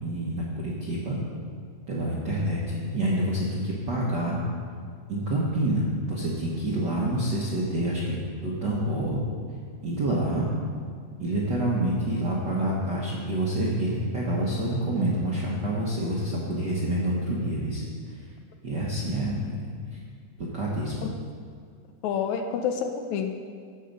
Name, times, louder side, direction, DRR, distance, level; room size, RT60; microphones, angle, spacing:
voice 1, 0.0-1.2 1.9-4.4 5.1-8.2 8.4-9.2 9.8-10.5 11.2-18.2 18.6-20.0 20.4-21.1, right 1 dB, 60° right, -5 dB, 1.1 m, -27 dB
voice 2, 22.0-23.3, left 7 dB, 75° left, 5 dB, 1.8 m, -28 dB
15.0 x 5.7 x 5.3 m, 2.1 s
omnidirectional pair, 3.6 m